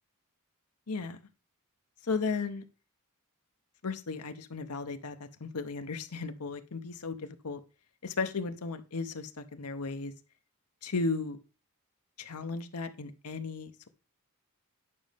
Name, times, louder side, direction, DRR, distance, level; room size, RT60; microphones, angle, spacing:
voice 1, 0.9-1.2 2.0-2.6 3.8-7.6 8.0-10.1 10.8-11.4 12.2-13.9, left 4 dB, 80° left, 0.9 m, -35 dB
9.8 x 5.3 x 3.5 m
head